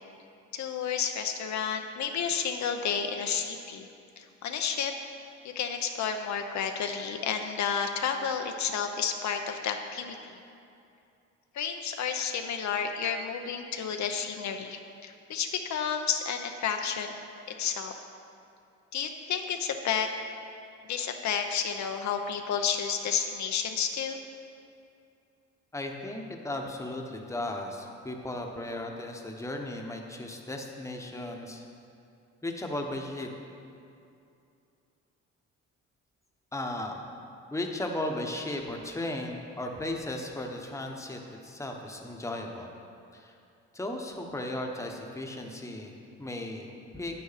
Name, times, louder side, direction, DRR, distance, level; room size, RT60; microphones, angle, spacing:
voice 1, 0.5-3.9 4.2-4.9 5.4-10.4 11.5-17.1 17.5-17.9 18.9-20.1 20.9-24.2, left 7 dB, 65° left, 5 dB, 0.7 m, -31 dB
voice 2, 25.7-31.6 32.4-33.3 36.5-37.0 37.5-42.7 43.1-43.4 43.7-47.2, left 1 dB, 10° left, 2 dB, 1.1 m, -36 dB
9.2 x 8.7 x 4.1 m, 2.6 s
cardioid pair, 90°, 30 cm